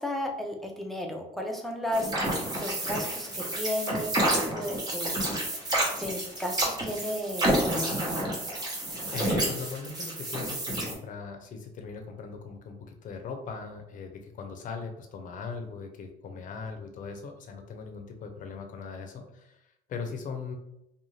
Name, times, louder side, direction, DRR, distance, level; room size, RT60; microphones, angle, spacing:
voice 1, 0.0-5.3 6.0-8.4, left 1 dB, ahead, 0 dB, 0.5 m, -34 dB
sound 1, 1.9-10.9, right 1 dB, 25° right, 0.9 m, -29 dB
voice 2, 9.1-20.5, left 4 dB, 50° left, 4 dB, 0.6 m, -39 dB
2.6 x 2.3 x 3.1 m, 0.82 s
cardioid pair, 110°, 17 cm